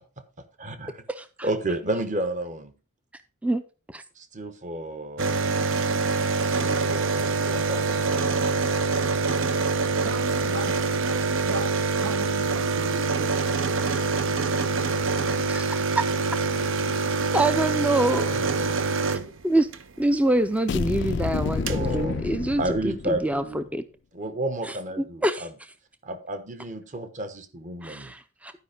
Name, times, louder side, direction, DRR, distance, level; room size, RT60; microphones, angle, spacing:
voice 1, 0.6-1.0 1.4-2.7 4.2-5.4 6.6-8.5 13.2-13.3 18.3-18.9 21.7-22.3 22.6-23.7 24.1-25.5 26.0-28.1, right 1 dB, 35° right, 1.1 m, -32 dB
sound 1, 5.2-19.8 21.1-21.2 21.4-21.8, right 4 dB, 70° right, 0.7 m, -25 dB
voice 2, 10.0-13.3, right 2 dB, 90° right, 1.3 m, -36 dB
voice 3, 17.3-18.3 19.4-19.7 20.0-23.8 25.2-25.5 27.8-28.5, right 1 dB, 5° right, 0.4 m, -25 dB
sound 2, 20.7-23.5, left 5 dB, 60° left, 0.4 m, -29 dB
11.5 x 5.2 x 4.9 m
head